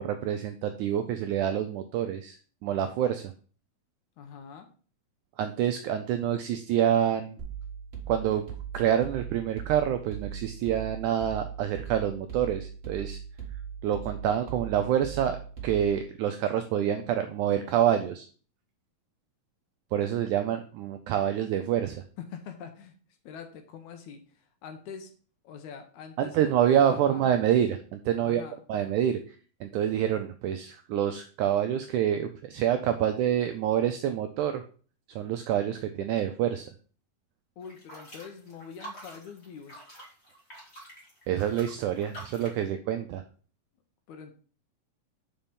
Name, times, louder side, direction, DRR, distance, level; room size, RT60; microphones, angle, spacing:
voice 1, 0.0-3.3 5.4-7.4 8.1-8.4 8.7-13.2 13.8-15.4 15.6-18.3 19.9-22.0 26.2-28.4 28.7-34.6 35.1-36.7 41.3-43.2, right 10 dB, 85° right, 7 dB, 1.7 m, -27 dB
voice 2, 4.2-4.7 22.2-22.9 23.2-25.1 25.4-27.2 28.2-28.6 37.6-39.8 44.1-44.3, left 7 dB, 75° left, 6 dB, 1.9 m, -44 dB
sound 1, 7.4-16.1, right 8 dB, 40° right, 0.9 m, -39 dB
sound 2, 37.6-42.6, right 1 dB, 25° left, 1.7 m, -47 dB
5.7 x 5.3 x 5.2 m, 0.41 s
omnidirectional pair, 4.1 m